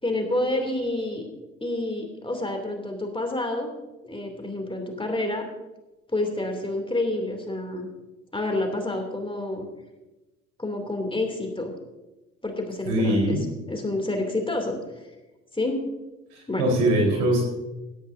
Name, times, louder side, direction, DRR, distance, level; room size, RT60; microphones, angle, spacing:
voice 1, 0.0-1.3 1.6-3.7 4.0-5.4 6.1-7.9 8.3-9.7 10.6-11.7 12.4-13.4 13.7-15.1 15.5-15.8 16.5-16.7, left 2 dB, 15° left, 3 dB, 2.9 m, -28 dB
voice 2, 12.8-13.4 16.3-17.4, right 1 dB, 75° right, 0 dB, 4.4 m, -22 dB
17.0 x 13.0 x 2.8 m, 1.1 s
hypercardioid pair, 55°, 41 cm